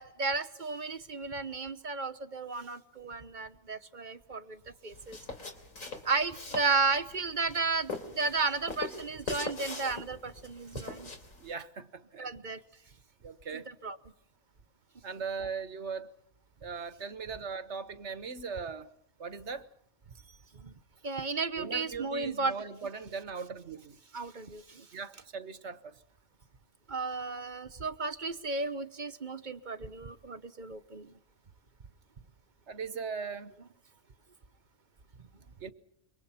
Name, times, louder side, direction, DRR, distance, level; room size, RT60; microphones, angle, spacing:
voice 1, 0.0-5.2 6.0-11.1 12.2-12.6 13.5-14.0 20.5-20.7 21.0-22.6 24.1-24.9 26.9-31.1, right 4 dB, 40° right, 1.2 m, -33 dB
sound 1, 4.9-11.5, left 3 dB, 85° left, 3.7 m, -42 dB
voice 2, 11.4-12.3 13.2-13.7 15.0-16.1 16.6-18.9 19.2-19.7 21.6-24.0 24.9-25.9 32.7-33.5 35.6-35.7, right 5 dB, 60° right, 1.6 m, -39 dB
26.5 x 23.5 x 5.8 m
omnidirectional pair, 1.4 m